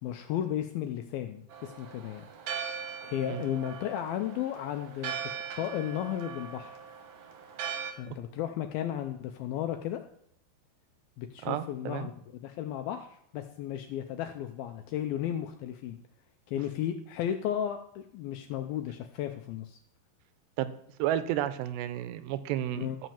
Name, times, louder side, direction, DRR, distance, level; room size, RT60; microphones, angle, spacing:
voice 1, 0.0-2.3 3.0-6.8 8.0-10.0 11.2-16.0 16.5-19.8 22.8-23.0, left 11 dB, 85° left, 6 dB, 2.2 m, -34 dB
Church bell, 1.5-7.9, right 7 dB, 65° right, 2.1 m, -40 dB
voice 2, 11.4-12.1 20.6-20.7 21.0-22.9, right 12 dB, 85° right, 12 dB, 2.9 m, -32 dB
12.5 x 6.1 x 7.2 m, 0.70 s
omnidirectional pair, 4.9 m